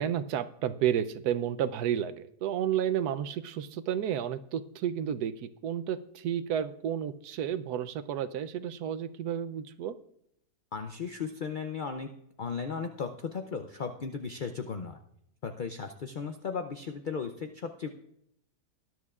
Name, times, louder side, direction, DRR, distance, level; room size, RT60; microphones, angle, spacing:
voice 1, 0.0-9.9, right 9 dB, 75° right, 11 dB, 1.2 m, -31 dB
voice 2, 10.7-12.1 12.4-15.0 15.4-17.9, left 5 dB, 70° left, 6 dB, 0.4 m, -36 dB
19.5 x 11.0 x 2.4 m, 0.75 s
omnidirectional pair, 1.7 m